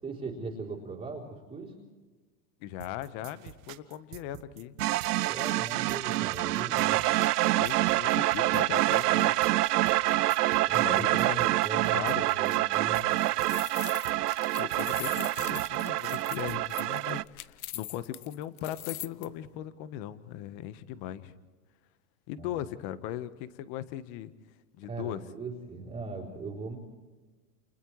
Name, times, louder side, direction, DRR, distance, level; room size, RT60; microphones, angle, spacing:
voice 1, 0.0-1.7 5.3-7.0 10.7-13.1 22.4-22.6 24.9-26.8, right 3 dB, 15° right, -5 dB, 3.8 m, -39 dB
voice 2, 2.6-4.7 6.6-7.0 7.5-9.4 10.7-12.3 14.5-21.3 22.3-24.3 24.8-25.2, left 12 dB, 45° left, 13 dB, 1.3 m, -39 dB
sound 1, 2.8-16.8, right 14 dB, 60° right, 1.4 m, -47 dB
sound 2, 4.8-17.2, right 17 dB, 80° right, 0.6 m, -27 dB
sound 3, 12.9-19.3, left 15 dB, 70° left, 0.9 m, -42 dB
29.5 x 29.0 x 3.2 m, 1.3 s
hypercardioid pair, 135°, 46 cm